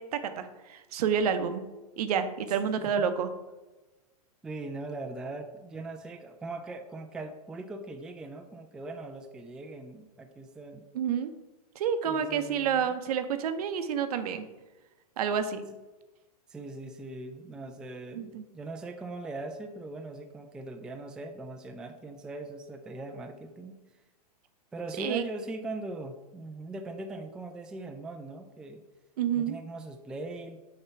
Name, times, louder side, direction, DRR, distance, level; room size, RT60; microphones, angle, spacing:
voice 1, 0.0-1.6 2.0-3.3 10.9-11.3 11.8-14.5 15.2-15.6 18.1-18.4 25.0-25.2 29.2-29.6, right 7 dB, 70° right, 9 dB, 0.7 m, -29 dB
voice 2, 4.4-10.8 12.1-13.0 16.5-23.8 24.7-28.8 29.4-30.6, right 2 dB, 5° right, 5 dB, 0.3 m, -40 dB
6.6 x 2.9 x 5.6 m, 1.1 s
hypercardioid pair, 130°, 20 cm